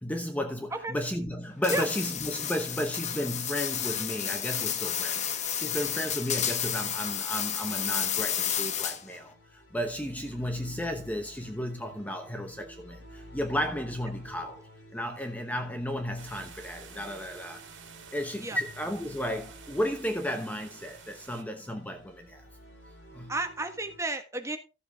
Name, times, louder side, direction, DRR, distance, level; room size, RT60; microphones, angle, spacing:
voice 1, 0.0-14.6 14.9-17.6 18.1-22.4 23.1-23.3, equal, 10° left, 0.9 m, -33 dB
sound 1, 1.6-9.2, left 9 dB, 40° left, 1.0 m, -31 dB
sound 2, 8.0-24.0, equal, 75° left, 3.1 m, -52 dB
sound 3, 16.2-21.4, right 7 dB, 90° right, 2.1 m, -50 dB
voice 2, 23.3-24.6, right 2 dB, 15° right, 1.3 m, -32 dB
13.5 x 7.4 x 3.5 m
head